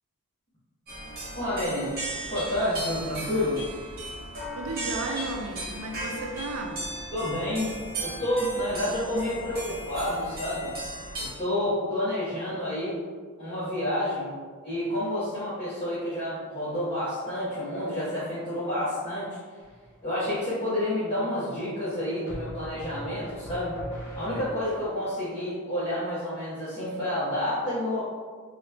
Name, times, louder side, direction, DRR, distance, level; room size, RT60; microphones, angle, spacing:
sound 1, 0.9-11.3, right 1 dB, 45° right, 1.0 m, -36 dB
voice 1, 1.3-1.9 2.3-3.6 7.1-10.7 11.2-13.0 13.4-14.3 14.6-19.4 20.0-23.7 24.1-28.0, left 1 dB, 25° left, -14 dB, 1.0 m, -29 dB
voice 2, 4.5-6.8, right 2 dB, 80° right, 2 dB, 0.5 m, -34 dB
sound 2, 19.6-20.1 22.3-24.9, equal, 60° left, 0.9 m, -40 dB
2.9 x 2.4 x 3.3 m, 1.6 s
head